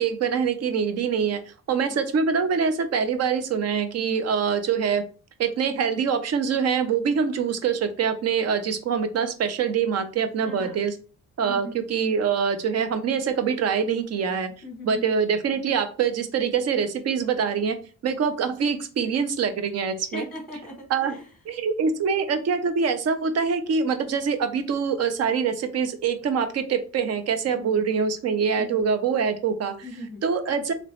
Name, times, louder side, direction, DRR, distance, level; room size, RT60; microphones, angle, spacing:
voice 1, 0.0-5.1 5.4-10.9 11.4-14.5 14.8-17.8 18.0-20.3 20.9-21.2 21.5-29.7 30.2-30.7, right 6 dB, 55° right, 9 dB, 0.6 m, -24 dB
voice 2, 10.4-10.8 11.4-11.9 14.6-15.1 20.1-21.3 27.5-27.8 28.6-28.8 29.8-30.2, left 1 dB, ahead, 1 dB, 1.1 m, -39 dB
3.0 x 3.0 x 2.9 m, 0.38 s
cardioid pair, 90°, 30 cm